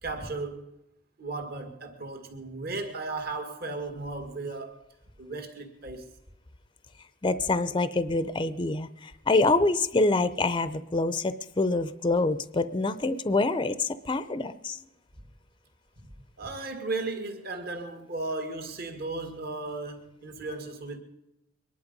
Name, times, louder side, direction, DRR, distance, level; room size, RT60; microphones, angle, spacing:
voice 1, 0.0-0.7 1.2-4.8 5.2-6.1 16.4-21.0, right 3 dB, 50° right, 5 dB, 2.1 m, -35 dB
voice 2, 7.2-8.9 9.3-14.8, left 2 dB, 25° left, 13 dB, 0.6 m, -26 dB
23.0 x 11.0 x 5.3 m, 0.92 s
head